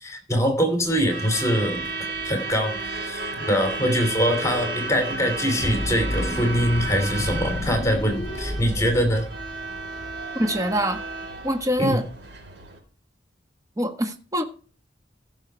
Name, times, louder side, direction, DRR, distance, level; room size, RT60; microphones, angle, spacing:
voice 1, 0.0-1.8 2.2-9.3 11.8-12.0, equal, 15° left, 2.8 m, -23 dB
Truck / Alarm, 0.8-12.8, right 3 dB, 75° right, 4.2 m, -33 dB
sound 1, 5.6-9.9, left 1 dB, 40° left, 1.6 m, -30 dB
voice 2, 10.3-11.0 11.4-12.0 13.8-14.4, equal, 20° right, 1.4 m, -24 dB
15.5 x 6.5 x 4.6 m
head